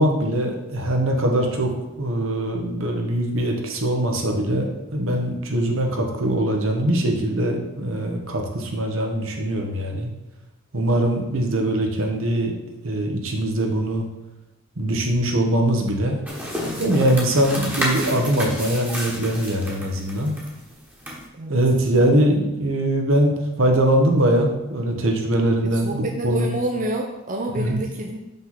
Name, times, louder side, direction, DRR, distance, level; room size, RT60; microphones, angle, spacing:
voice 1, 0.0-1.7 2.0-10.1 10.7-12.5 12.8-14.0 14.8-16.2 16.8-20.3 21.5-26.5 27.6-27.8, right 1 dB, 75° right, 2 dB, 1.1 m, -22 dB
sound 1, 16.3-21.2, equal, 10° right, 1.3 m, -31 dB
voice 2, 25.6-28.2, right 1 dB, 40° right, 2 dB, 0.6 m, -28 dB
5.9 x 5.4 x 4.1 m, 0.94 s
head